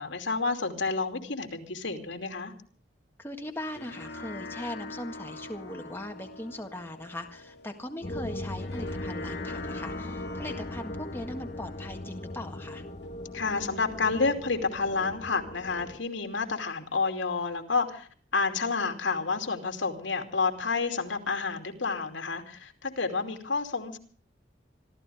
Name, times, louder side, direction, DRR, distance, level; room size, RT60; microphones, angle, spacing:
voice 1, 0.0-2.5 13.3-24.0, left 4 dB, 85° left, 5 dB, 2.8 m, -30 dB
voice 2, 3.2-12.8, left 1 dB, 10° left, 4 dB, 1.7 m, -39 dB
sound 1, 3.4-14.4, left 2 dB, 65° left, 2.3 m, -44 dB
sound 2, 8.0-16.0, left 1 dB, 35° left, 0.8 m, -39 dB
26.0 x 14.5 x 3.5 m, 0.43 s
head